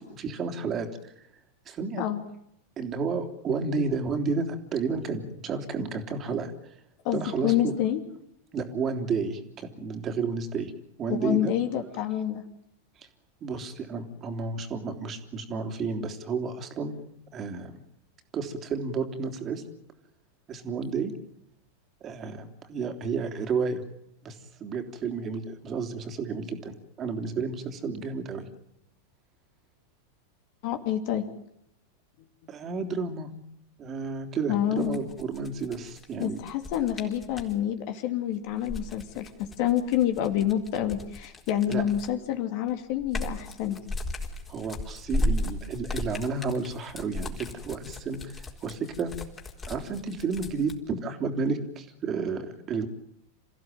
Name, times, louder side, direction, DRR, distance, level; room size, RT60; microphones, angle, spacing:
voice 1, 0.1-1.3 1.7-2.0 2.8-6.5 7.1-7.7 8.5-10.7 11.0-11.5 13.4-17.0 17.3-17.8 18.3-19.6 20.5-21.1 22.0-23.8 24.2-28.5 32.5-33.3 33.8-36.4 41.7-41.8 44.5-49.1 49.7-52.9, right 4 dB, 30° right, 6 dB, 3.3 m, -31 dB
voice 2, 7.0-8.0 11.1-12.4 30.6-31.3 34.5-35.0 36.2-43.8, left 11 dB, 50° left, 7 dB, 2.7 m, -28 dB
sound 1, 34.8-37.6 38.5-42.3 42.7-50.8, left 1 dB, 20° left, 4.0 m, -35 dB
28.0 x 15.5 x 9.2 m, 0.77 s
figure-of-eight pair, 90°, 0 cm